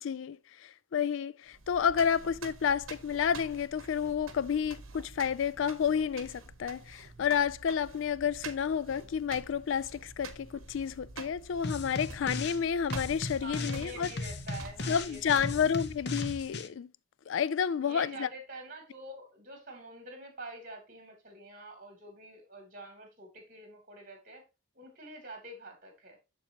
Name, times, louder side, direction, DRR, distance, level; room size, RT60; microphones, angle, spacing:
voice 1, 0.0-14.1 14.9-16.9 17.3-18.3, left 7 dB, 70° left, 0.3 m, -30 dB
sound 1, 1.5-16.6, right 4 dB, 80° right, 1.1 m, -48 dB
sound 2, 11.6-12.6 12.9-16.7, left 2 dB, 50° left, 0.8 m, -37 dB
voice 2, 13.4-15.6 17.8-24.4 24.7-26.2, right 2 dB, 40° right, 3.0 m, -46 dB
7.1 x 7.0 x 2.9 m
head